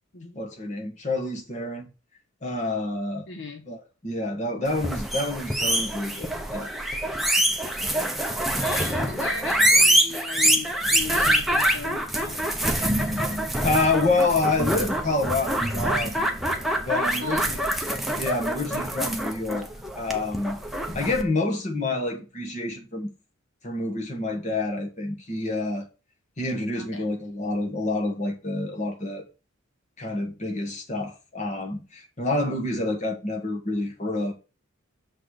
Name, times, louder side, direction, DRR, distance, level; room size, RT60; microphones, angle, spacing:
voice 1, 0.3-1.9 2.4-3.3 3.7-6.7 13.6-16.1 16.8-17.6 18.2-19.7 20.0-20.6 20.9-23.1 23.6-25.9 26.4-29.2 30.0-34.3, left 2 dB, 35° left, 1.4 m, -28 dB
voice 2, 3.3-3.6 8.6-12.4 17.2-17.7 26.8-27.1, left 4 dB, 60° left, 0.8 m, -37 dB
sound 1, 4.7-21.2, right 1 dB, ahead, 0.7 m, -25 dB
6.6 x 4.1 x 6.3 m
head